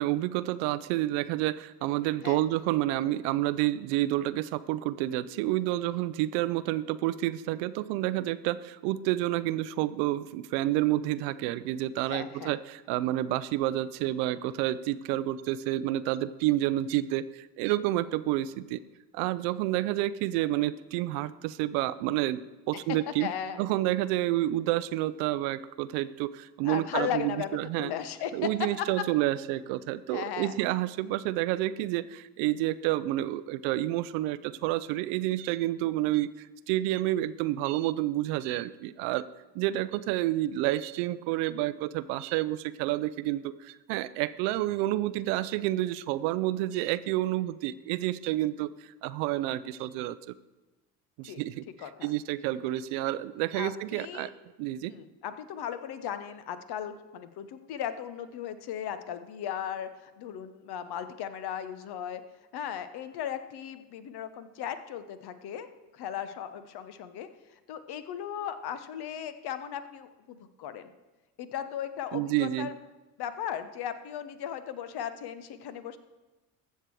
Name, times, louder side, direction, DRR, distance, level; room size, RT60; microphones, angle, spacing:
voice 1, 0.0-18.8 19.1-23.3 23.6-27.9 28.3-39.2 39.5-48.7 49.0-50.2 51.2-54.3 54.6-54.9 72.1-72.7, right 15 dB, 65° right, 16 dB, 0.6 m, -29 dB
voice 2, 12.1-12.5 23.2-23.6 26.6-28.3 28.8-28.9 30.1-30.6 51.3-51.4 51.8-52.1 53.5-54.3 54.9-62.2 62.5-65.7 65.9-67.3 67.7-70.9 71.4-72.7 73.2-76.0, left 9 dB, 50° left, 11 dB, 1.0 m, -37 dB
15.0 x 6.6 x 4.7 m, 1.2 s
hypercardioid pair, 60°, 49 cm